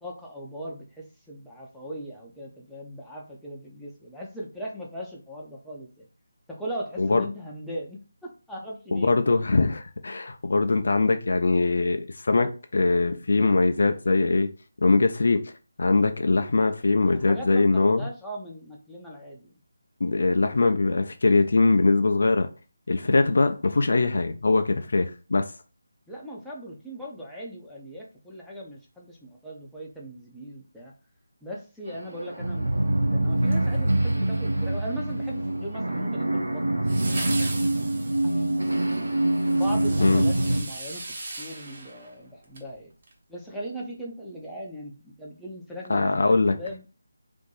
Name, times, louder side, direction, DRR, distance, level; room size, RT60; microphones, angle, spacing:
voice 1, 0.0-6.1 6.5-9.1 17.2-19.5 26.1-30.9 31.4-38.8 39.5-41.0 41.4-42.9 43.3-46.9, equal, ahead, 0.6 m, -39 dB
voice 2, 8.9-14.5 14.8-15.5 15.8-18.1 20.0-22.5 22.9-25.5 40.0-40.3 45.9-46.5, left 3 dB, 55° left, 0.4 m, -22 dB
sound 1, 31.9-40.6, right 1 dB, 75° right, 0.7 m, -25 dB
sound 2, 33.4-34.4 36.9-42.7 43.0-43.1, right 2 dB, 45° right, 1.1 m, -38 dB
2.6 x 2.5 x 3.9 m
figure-of-eight pair, 155°, 0 cm